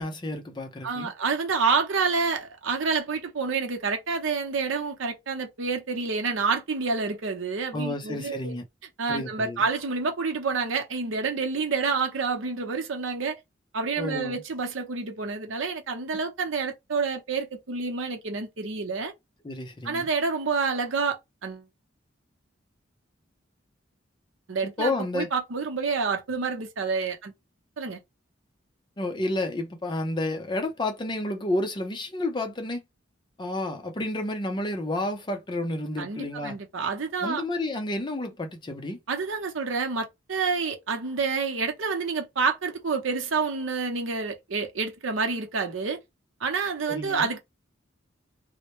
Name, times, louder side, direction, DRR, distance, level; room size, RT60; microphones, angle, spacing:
voice 1, 0.0-1.1 7.7-8.6 9.1-9.6 14.0-14.4 19.4-20.1 24.8-25.3 29.0-32.8 33.4-36.5 37.2-39.0 46.9-47.3, left 2 dB, 25° left, 0.5 m, -30 dB
voice 2, 0.8-8.5 9.0-13.4 13.7-19.1 19.8-21.7 24.5-27.3 27.8-28.0 36.0-37.4 39.1-46.0 46.4-47.4, right 4 dB, 85° right, 0.7 m, -28 dB
2.1 x 2.0 x 2.9 m
head